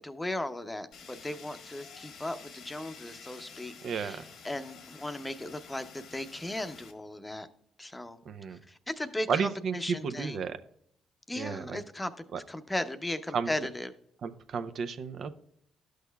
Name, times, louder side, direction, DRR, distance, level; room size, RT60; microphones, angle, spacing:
voice 1, 0.0-7.5 7.8-8.2 8.5-10.4 11.3-13.9, left 1 dB, 15° left, 9 dB, 0.7 m, -37 dB
Fire, 0.9-6.9, left 5 dB, 70° left, 1.2 m, -50 dB
voice 2, 3.8-4.2 8.3-8.6 9.3-10.6 11.4-11.8 12.3-12.4 13.3-13.5 14.2-15.3, right 6 dB, 60° right, 10 dB, 0.6 m, -32 dB
12.0 x 6.4 x 2.3 m, 0.69 s
supercardioid pair, 70°, 0 cm